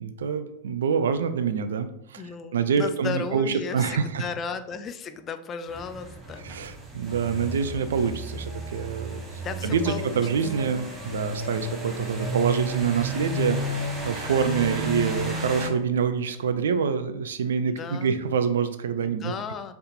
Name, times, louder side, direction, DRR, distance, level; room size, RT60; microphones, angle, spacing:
voice 1, 0.0-2.2 2.5-4.2 6.4-19.3, right 6 dB, 65° right, 10 dB, 0.3 m, -26 dB
voice 2, 2.2-6.5 9.4-10.2 10.6-10.7 17.6-18.2 19.0-19.7, left 6 dB, 25° left, 9 dB, 0.3 m, -35 dB
sound 1, 5.7-15.7, equal, 15° right, 0.8 m, -33 dB
3.9 x 3.3 x 2.6 m, 0.78 s
figure-of-eight pair, 90°, 0 cm